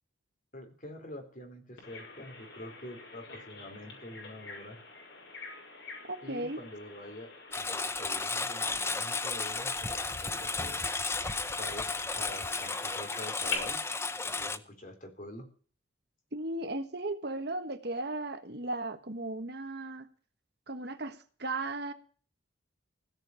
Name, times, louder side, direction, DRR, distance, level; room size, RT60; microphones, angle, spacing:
voice 1, 0.5-4.8 6.2-10.8 11.6-13.8 14.1-15.5, left 1 dB, 45° left, 5 dB, 4.3 m, -46 dB
Bird vocalization bird call bird song, 1.8-13.6, left 4 dB, 70° left, 6.7 m, -46 dB
voice 2, 6.1-6.6 16.3-20.1 20.7-21.9, right 2 dB, 55° right, 9 dB, 1.5 m, -36 dB
Engine, 7.5-14.6, left 3 dB, 15° left, 0.7 m, -33 dB
17.0 x 6.7 x 8.8 m, 0.42 s
head